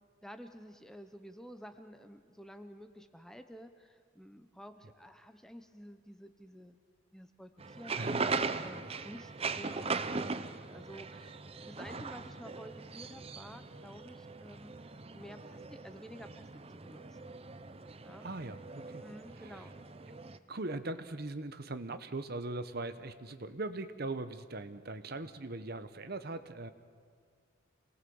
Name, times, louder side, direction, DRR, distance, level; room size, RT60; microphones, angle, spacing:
voice 1, 0.2-6.8 7.1-8.0 8.6-10.0 10.3-16.5 16.7-17.3 18.0-18.3 19.0-19.7, equal, ahead, 8 dB, 0.9 m, -51 dB
sound 1, 7.6-20.4, right 4 dB, 30° right, 0.7 m, -40 dB
voice 2, 18.2-19.0 19.4-19.6 20.5-26.7, right 2 dB, 50° right, 11 dB, 1.0 m, -40 dB
27.5 x 19.5 x 7.1 m, 2.1 s
head